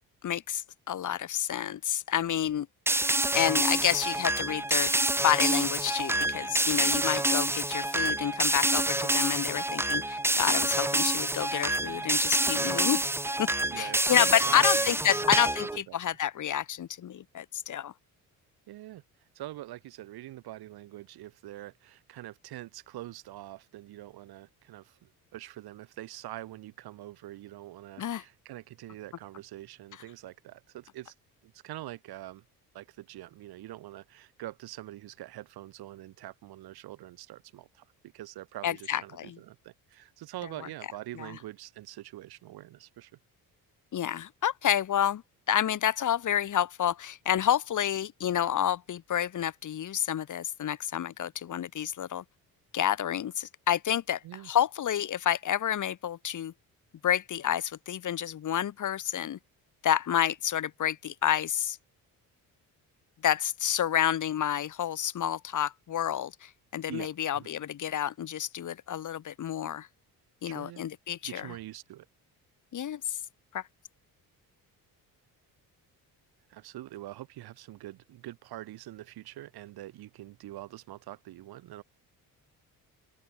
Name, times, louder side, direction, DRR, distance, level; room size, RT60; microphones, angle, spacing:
voice 1, 0.2-2.7 3.3-4.9 5.2-13.1 13.4-13.5 13.8-17.9 28.0-28.2 38.6-39.4 41.2-41.3 43.9-45.2 45.5-52.2 52.7-54.2 54.5-56.5 57.0-59.4 59.8-61.8 63.2-69.9 70.4-71.5 72.7-73.2 73.5-73.6, left 10 dB, 55° left, 2.1 m, -29 dB
sound 1, 2.9-15.8, right 1 dB, 5° right, 0.9 m, -27 dB
voice 2, 13.7-16.2 18.7-19.0 19.3-31.1 31.4-32.4 32.7-37.9 38.1-43.1 54.2-54.5 66.9-67.5 70.4-70.8 71.2-72.1 76.5-81.8, right 15 dB, 85° right, 7.2 m, -44 dB
open air
cardioid pair, 110°, 37 cm